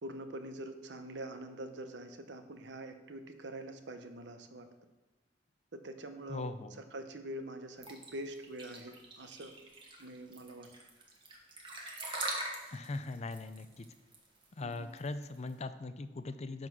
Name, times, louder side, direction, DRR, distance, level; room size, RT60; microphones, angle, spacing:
voice 1, 0.0-4.7 5.7-6.5 6.8-9.5 10.0-10.7 14.6-14.9, right 1 dB, 85° right, 8 dB, 0.9 m, -45 dB
voice 2, 6.3-6.8 12.7-13.9 14.6-16.7, left 3 dB, 40° left, 11 dB, 0.5 m, -40 dB
sound 1, 7.8-15.5, right 2 dB, 30° right, 1.4 m, -42 dB
10.5 x 4.1 x 6.1 m, 1.1 s
head